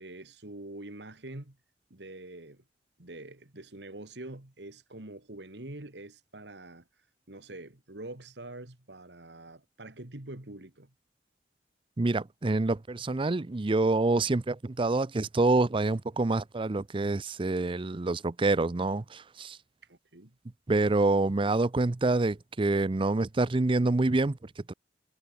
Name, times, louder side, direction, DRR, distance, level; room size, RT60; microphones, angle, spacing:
voice 1, 0.0-1.6 1.9-2.6 3.0-6.9 7.3-10.9 19.8-20.4, right 2 dB, 75° right, 2.4 m, -45 dB
voice 2, 12.0-19.6 20.7-24.7, right 2 dB, 30° right, 0.6 m, -27 dB
head